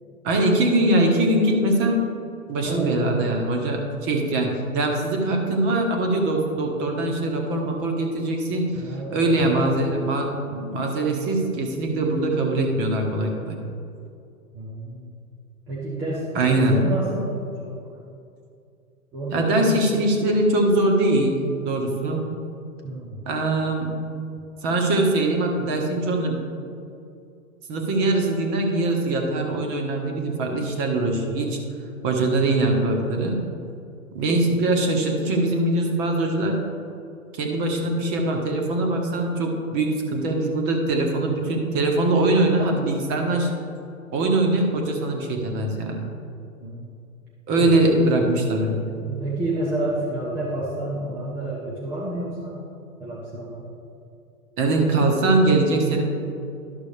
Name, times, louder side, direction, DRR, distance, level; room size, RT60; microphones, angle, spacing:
voice 1, 0.2-2.0 2.5-8.7 9.1-13.6 16.3-16.8 19.3-21.4 21.6-22.2 23.2-23.9 24.6-26.4 27.7-31.6 32.0-33.4 34.1-36.6 37.3-43.5 44.1-46.0 47.5-48.9 54.6-56.0, right 2 dB, 30° right, 2 dB, 1.4 m, -22 dB
voice 2, 2.6-3.0 8.7-9.3 14.5-15.1 15.7-17.3 17.6-17.7 19.1-19.9 22.8-23.2 32.1-32.4 46.6-46.9 47.6-47.9 49.1-52.7 53.0-53.7, right 1 dB, 5° right, -7 dB, 0.4 m, -29 dB
12.0 x 6.0 x 3.4 m, 2.5 s
hypercardioid pair, 125°, 43 cm